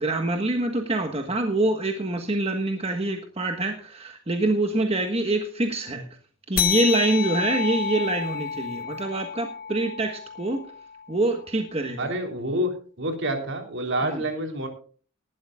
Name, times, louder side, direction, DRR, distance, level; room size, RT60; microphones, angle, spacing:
voice 1, 0.0-6.1 6.5-10.6 11.1-12.1 14.0-14.2, right 2 dB, 30° right, 5 dB, 1.4 m, -25 dB
sound 1, 6.6-11.5, left 8 dB, 40° left, 1.1 m, -30 dB
voice 2, 12.0-14.7, right 1 dB, 60° right, 5 dB, 3.6 m, -28 dB
19.5 x 12.0 x 2.4 m, 0.40 s
head